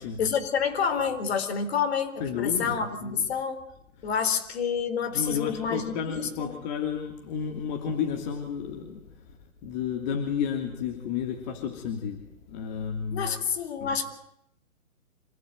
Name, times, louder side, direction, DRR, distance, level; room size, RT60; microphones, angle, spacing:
voice 1, 0.2-3.6 4.0-6.5 13.1-14.1, left 6 dB, 45° left, 8 dB, 4.0 m, -28 dB
voice 2, 2.2-3.2 4.0-4.1 5.1-9.4 9.6-13.3 13.8-14.0, left 7 dB, 30° left, 3 dB, 2.9 m, -32 dB
27.0 x 16.5 x 9.3 m, 0.76 s
hypercardioid pair, 140°, 42 cm